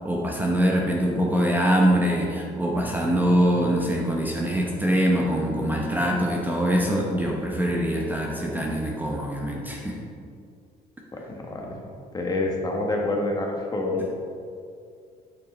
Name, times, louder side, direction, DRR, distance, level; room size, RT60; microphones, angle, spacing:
voice 1, 0.0-10.0, equal, 10° right, -2 dB, 0.8 m, -23 dB
voice 2, 11.3-11.8 12.1-14.0, left 2 dB, 25° left, 0 dB, 1.3 m, -27 dB
8.6 x 4.5 x 4.3 m, 2.3 s
cardioid pair, 110°, 17 cm